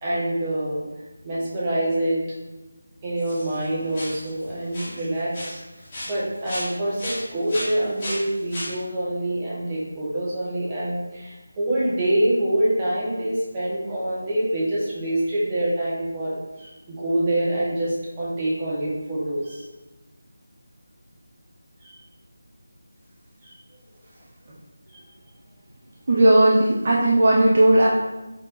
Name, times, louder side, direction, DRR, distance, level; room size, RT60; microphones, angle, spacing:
voice 1, 0.0-0.8 1.2-2.2 3.0-5.6 6.0-19.6 21.8-21.9 23.4-23.5, right 1 dB, 20° right, -8 dB, 1.2 m, -25 dB
sound 1, 3.2-3.6 3.9-4.4 4.7-5.0 5.3-6.7 7.0-8.7, left 1 dB, 25° left, 1.4 m, -34 dB
voice 2, 26.1-27.9, right 1 dB, 40° right, -5 dB, 0.6 m, -16 dB
4.4 x 4.3 x 2.6 m, 1.1 s
figure-of-eight pair, 160°, 0 cm